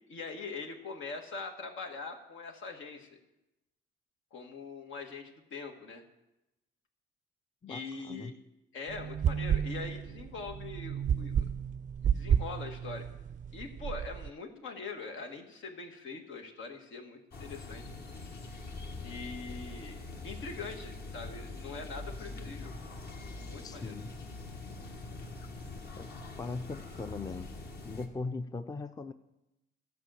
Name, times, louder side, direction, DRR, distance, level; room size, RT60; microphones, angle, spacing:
voice 1, 0.1-3.2 4.3-6.0 7.7-8.3 8.7-11.4 12.0-13.1 13.5-17.9 19.0-22.7 23.3-24.0, left 4 dB, 80° left, 4 dB, 1.7 m, -43 dB
voice 2, 7.6-8.3 23.6-24.1 25.4-25.5 26.0-26.1 26.4-27.5 27.8-29.1, left 3 dB, 20° left, 10 dB, 0.5 m, -39 dB
sound 1, 8.9-14.3, right 8 dB, 40° right, 0.4 m, -32 dB
sound 2, 17.3-28.1, left 3 dB, 55° left, 1.7 m, -44 dB
13.0 x 5.5 x 7.7 m, 0.94 s
cardioid pair, 90°, 20 cm